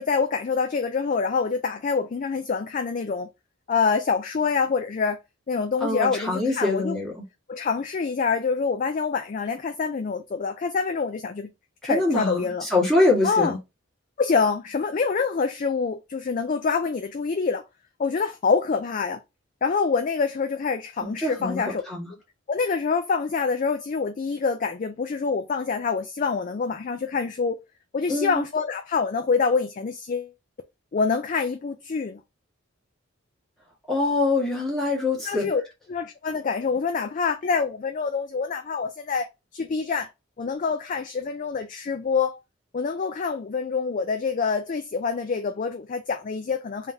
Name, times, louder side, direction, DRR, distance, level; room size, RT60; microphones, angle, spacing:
voice 1, 0.0-3.3 3.7-5.2 5.5-7.0 7.5-11.5 11.8-12.7 13.2-13.5 14.2-17.6 18.0-19.2 19.6-21.8 22.5-27.6 27.9-30.3 30.9-32.2 35.3-35.6 35.9-40.1 40.4-42.4 42.7-46.9, left 5 dB, 40° left, 0.3 m, -26 dB
voice 2, 5.8-7.1 11.8-13.6 21.0-22.1 28.1-28.4 33.9-35.5, left 2 dB, ahead, 1.6 m, -24 dB
3.5 x 2.7 x 3.5 m
head